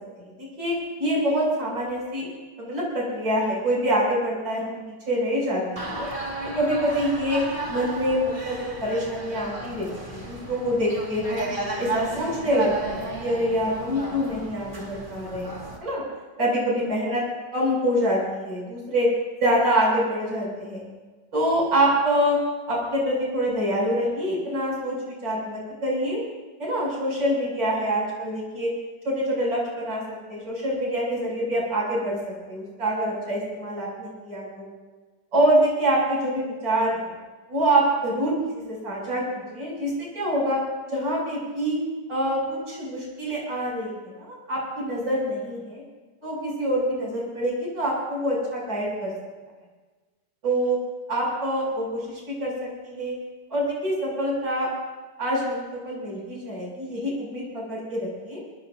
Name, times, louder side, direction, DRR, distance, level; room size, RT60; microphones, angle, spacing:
voice 1, 0.4-2.3 2.6-6.1 6.4-7.4 7.7-11.5 11.8-16.0 16.4-17.2 17.5-19.1 19.4-20.9 21.3-22.4 22.7-26.2 26.6-28.7 29.0-30.0 30.3-32.2 32.5-34.7 35.3-37.1 37.5-40.6 40.9-41.8 42.1-45.8 46.2-49.1 50.4-50.8 51.1-53.1 53.5-54.7 55.2-58.4, equal, 80° right, -4 dB, 7.8 m, -25 dB
sound 1, 5.8-15.8, right 2 dB, 25° right, 2.3 m, -33 dB
25.5 x 20.0 x 2.7 m, 1.3 s
omnidirectional pair, 1.9 m